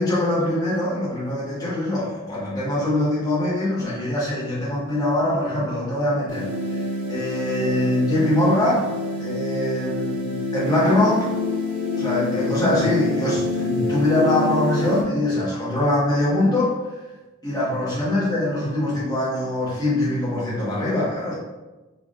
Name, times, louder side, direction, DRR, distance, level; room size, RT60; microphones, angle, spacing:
voice 1, 0.0-8.9 9.2-11.3 12.0-16.8 17.4-21.4, left 1 dB, 20° left, -8 dB, 1.3 m, -23 dB
sound 1, 6.3-15.0, left 2 dB, 75° right, 1.3 m, -27 dB
3.7 x 3.6 x 2.5 m, 1.1 s
head